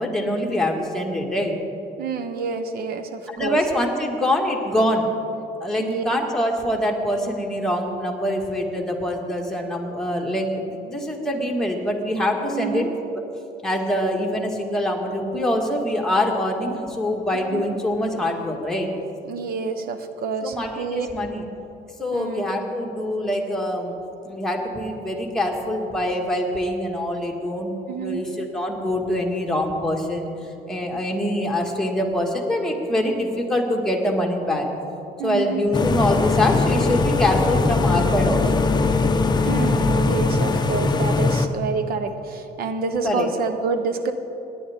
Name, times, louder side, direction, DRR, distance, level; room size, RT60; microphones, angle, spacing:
voice 1, 0.0-1.5 3.3-5.1 5.6-12.9 13.6-18.9 20.4-21.4 22.0-24.0 24.2-34.7 35.2-38.6 43.0-43.3, left 1 dB, 5° left, -1 dB, 1.7 m, -24 dB
voice 2, 2.0-3.6 5.8-6.0 12.5-12.9 17.5-17.6 19.2-21.1 22.1-22.5 27.9-28.2 35.2-35.6 39.3-44.1, right 5 dB, 65° right, 9 dB, 0.9 m, -28 dB
sound 1, 35.7-41.5, left 3 dB, 25° left, 0.7 m, -20 dB
18.0 x 10.5 x 3.6 m, 2.8 s
cardioid pair, 110°, 17 cm